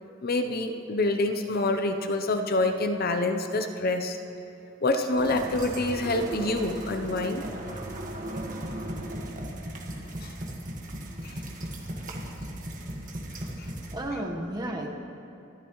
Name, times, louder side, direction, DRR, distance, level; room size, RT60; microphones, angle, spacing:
voice 1, 0.2-4.2 4.8-7.4 10.2-10.3 11.2-11.4, left 2 dB, 50° left, 6 dB, 0.7 m, -27 dB
sound 1, 5.2-14.0, right 1 dB, 40° right, 1.6 m, -36 dB
voice 2, 13.1-14.9, right 1 dB, 20° right, 0 dB, 1.2 m, -35 dB
25.0 x 12.5 x 3.1 m, 2.8 s
head